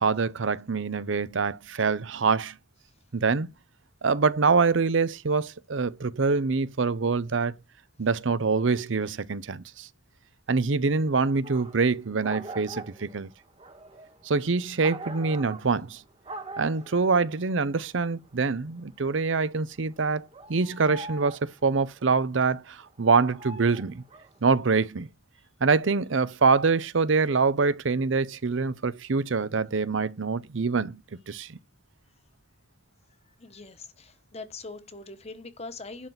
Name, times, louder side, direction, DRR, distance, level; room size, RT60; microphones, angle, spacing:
voice 1, 0.0-2.6 3.1-3.5 4.0-7.5 8.0-9.9 10.5-13.3 14.2-16.0 16.6-24.0 24.4-25.1 25.6-31.0 31.3-31.6, right 4 dB, 75° right, 0.7 m, -25 dB
sound 1, 11.4-11.9 12.2-16.0 16.2-17.1 17.5-19.5 19.9-22.0 22.9-24.4, right 2 dB, 30° right, 1.6 m, -42 dB
voice 2, 33.3-36.1, left 3 dB, 35° left, 1.2 m, -42 dB
11.0 x 4.0 x 7.8 m
head